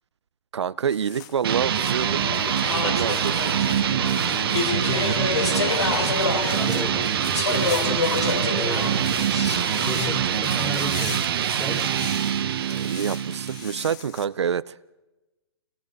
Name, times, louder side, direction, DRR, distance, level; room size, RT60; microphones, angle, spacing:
voice 1, 0.5-2.4 2.7-3.5 12.6-14.8, right 7 dB, 80° right, 16 dB, 0.6 m, -27 dB
sound 1, 0.9-14.3, left 10 dB, 40° left, 1.7 m, -41 dB
sound 2, 1.4-14.0, right 10 dB, 60° right, 1.3 m, -25 dB
Speech / Chatter, 1.5-10.9, left 4 dB, 85° left, 3.0 m, -29 dB
voice 2, 4.7-9.2 9.7-12.2, left 1 dB, 10° left, 1 dB, 4.9 m, -35 dB
29.5 x 22.5 x 4.0 m, 1.0 s
hypercardioid pair, 135°, 14 cm